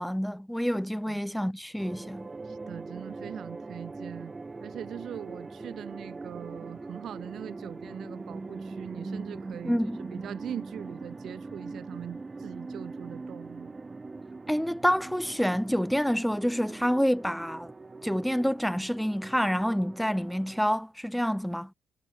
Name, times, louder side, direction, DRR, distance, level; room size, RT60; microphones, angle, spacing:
voice 1, 0.0-2.3 9.7-10.0 14.5-17.7 18.0-21.7, equal, ahead, 0.4 m, -28 dB
sound 1, 1.8-20.6, right 3 dB, 25° right, 1.7 m, -42 dB
voice 2, 2.4-4.3 4.6-13.8, right 10 dB, 65° right, 4.3 m, -41 dB
cardioid pair, 90°, 0 cm